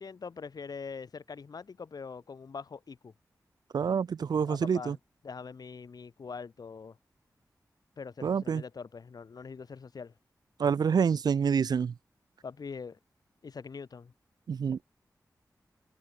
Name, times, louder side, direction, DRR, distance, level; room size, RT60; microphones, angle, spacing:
voice 1, 0.0-3.1 4.5-5.0 5.2-7.0 8.0-10.1 12.4-13.0 13.4-14.1, left 5 dB, 75° left, 7.9 m, -43 dB
voice 2, 3.7-5.0 8.2-8.6 10.6-11.9 14.5-14.8, right 6 dB, 85° right, 0.6 m, -27 dB
wide cardioid pair, 85°, 7 cm